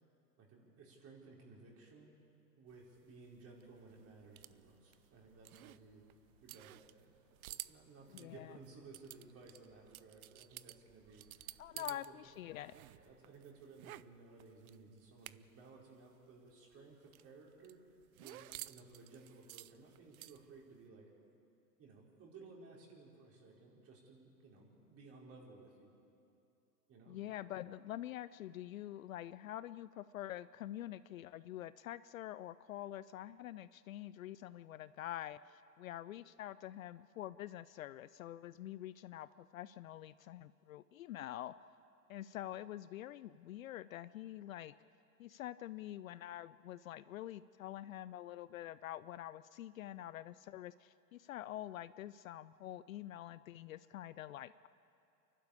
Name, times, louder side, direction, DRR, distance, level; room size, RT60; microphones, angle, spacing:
voice 1, 0.4-2.2 2.6-6.0 6.4-7.1 7.5-12.4 12.9-17.8 18.2-21.1 21.8-25.9 26.9-27.2, right 3 dB, 30° right, -2 dB, 4.8 m, -58 dB
sound 1, 2.7-12.1 12.3-15.7 16.0-16.1 16.4-20.7, right 14 dB, 60° right, 0.7 m, -53 dB
sound 2, 3.6-13.1, right 4 dB, 45° right, 6.5 m, -73 dB
voice 2, 8.1-8.6 11.6-12.8 27.1-41.5 42.1-44.7 45.2-54.7, left 13 dB, 55° left, 16 dB, 0.5 m, -46 dB
29.0 x 12.0 x 8.5 m, 2.7 s
figure-of-eight pair, 105°, 49 cm